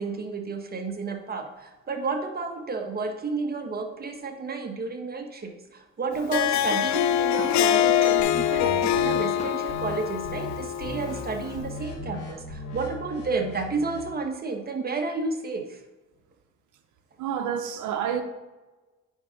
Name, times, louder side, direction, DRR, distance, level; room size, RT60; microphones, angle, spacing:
voice 1, 0.0-15.8, right 4 dB, 30° right, 1.2 m, -31 dB
Harp, 6.1-11.6, left 10 dB, 65° left, 0.4 m, -24 dB
sound 1, 7.4-7.7 9.4-9.7 10.8-10.9, left 2 dB, 25° left, 1.3 m, -40 dB
sound 2, 8.2-9.2 9.7-10.0 10.2-10.5 10.8-14.1, left 2 dB, 90° left, 1.7 m, -38 dB
voice 2, 17.2-18.2, right 8 dB, 80° right, 0.8 m, -28 dB
9.7 x 3.7 x 5.1 m
cardioid pair, 90°, 30 cm